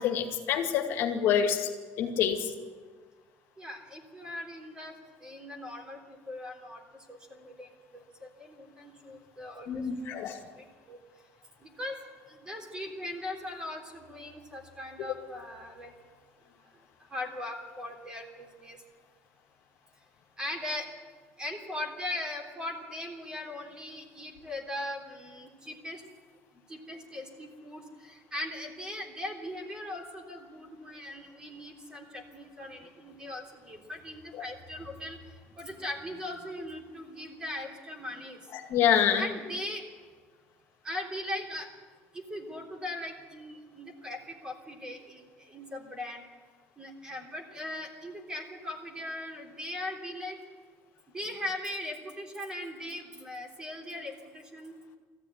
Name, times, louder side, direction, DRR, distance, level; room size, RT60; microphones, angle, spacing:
voice 1, 0.0-1.7 2.0-2.5 9.7-10.4 38.5-39.3, left 8 dB, 55° left, 4 dB, 2.2 m, -26 dB
voice 2, 3.6-4.9 5.2-6.8 7.1-10.2 10.6-11.0 11.6-12.0 12.3-15.9 17.1-18.8 20.4-20.9 21.4-26.0 26.7-35.2 35.6-38.4 39.2-39.8 40.8-41.7 42.1-46.2 46.8-50.4 51.1-54.8, left 1 dB, 15° right, 1 dB, 3.4 m, -39 dB
19.0 x 14.5 x 9.6 m, 1.5 s
cardioid pair, 155°, 5 cm